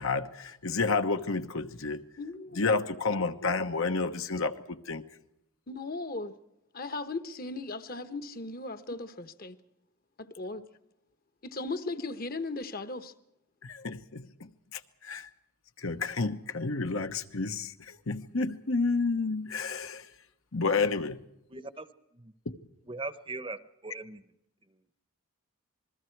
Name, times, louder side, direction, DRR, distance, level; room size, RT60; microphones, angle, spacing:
voice 1, 0.0-2.0 2.5-5.0 13.6-15.3 15.8-20.1 20.5-21.2 22.5-22.6, left 4 dB, 70° left, 8 dB, 1.2 m, -30 dB
voice 2, 2.2-2.8 5.7-6.3 6.7-9.6 10.2-10.6 11.4-13.1, left 3 dB, 40° left, 11 dB, 1.1 m, -37 dB
voice 3, 21.5-21.9 22.1-22.3 22.9-24.2, right 3 dB, 25° right, 13 dB, 0.9 m, -39 dB
27.5 x 21.0 x 4.6 m, 0.87 s
head